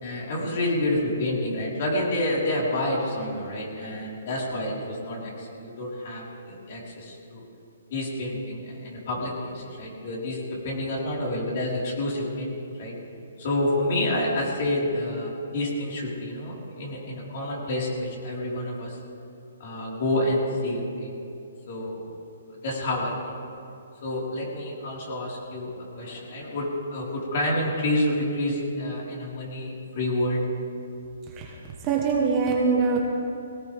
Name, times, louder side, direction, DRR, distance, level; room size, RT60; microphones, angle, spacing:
voice 1, 0.0-7.4 7.9-12.9 13.4-19.0 19.6-21.1 21.7-22.0 22.6-23.1 24.0-30.4, left 1 dB, 40° left, -4 dB, 4.6 m, -28 dB
voice 2, 31.8-33.0, right 5 dB, 20° right, -1 dB, 1.4 m, -23 dB
21.5 x 17.5 x 3.6 m, 2.6 s
hypercardioid pair, 170°, 0 cm